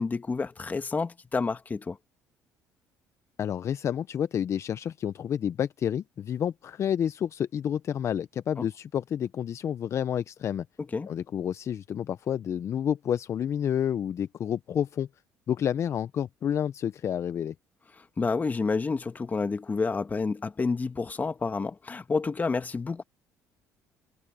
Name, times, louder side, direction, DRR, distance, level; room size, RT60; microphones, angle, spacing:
voice 1, 0.0-2.0 8.6-8.7 10.9-11.1 18.0-23.0, left 4 dB, 25° left, 1.8 m, -29 dB
voice 2, 3.4-10.7 11.1-15.1 15.5-17.5, left 9 dB, 50° left, 0.6 m, -29 dB
supercardioid pair, 85°, 6 cm